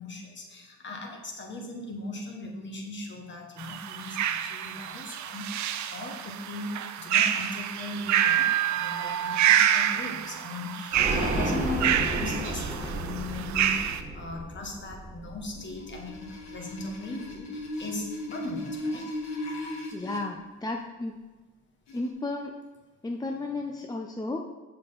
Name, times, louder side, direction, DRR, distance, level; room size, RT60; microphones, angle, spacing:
voice 1, 0.0-19.1, left 2 dB, 40° left, 2 dB, 1.4 m, -38 dB
sound 1, 3.6-14.0, right 10 dB, 70° right, 0.5 m, -27 dB
sound 2, 10.9-16.5 16.9-17.0 17.3-17.4, right 1 dB, 25° right, 1.5 m, -33 dB
sound 3, 15.6-20.2 21.9-22.1, left 1 dB, 60° left, 1.6 m, -37 dB
voice 2, 19.9-21.2 21.9-22.5 23.0-24.5, left 2 dB, 15° left, 2 dB, 0.5 m, -33 dB
6.6 x 5.6 x 4.0 m, 1.2 s
cardioid pair, 90°, 30 cm